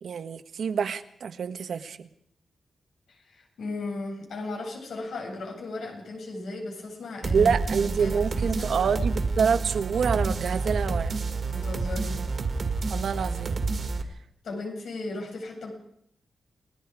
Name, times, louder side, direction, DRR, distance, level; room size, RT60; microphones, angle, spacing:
voice 1, 0.0-2.1 7.3-11.1 12.9-13.6, right 6 dB, 65° right, 10 dB, 1.4 m, -27 dB
voice 2, 3.1-8.7 11.5-12.2 14.4-15.7, left 2 dB, 85° left, 1 dB, 7.5 m, -36 dB
sound 1, 7.2-14.0, right 3 dB, 40° right, 2.1 m, -29 dB
30.0 x 19.0 x 4.9 m, 0.70 s
wide cardioid pair, 180°, 0 cm